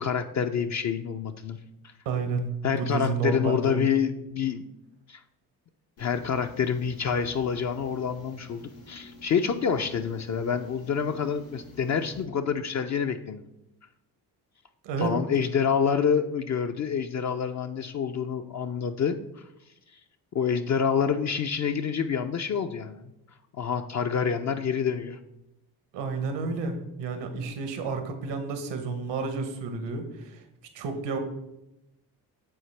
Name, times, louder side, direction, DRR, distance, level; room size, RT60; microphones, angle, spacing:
voice 1, 0.0-1.6 2.6-4.6 5.1-5.2 6.0-13.4 15.0-19.5 20.3-23.1 23.5-25.2, left 7 dB, 40° left, 6 dB, 0.4 m, -27 dB
voice 2, 2.0-3.9 14.8-15.1 25.9-30.4 30.7-31.2, right 4 dB, 80° right, 7 dB, 1.0 m, -30 dB
sound 1, 6.0-12.2, left 2 dB, 85° left, 1.7 m, -48 dB
7.8 x 4.0 x 3.2 m, 0.90 s
supercardioid pair, 60°, 42 cm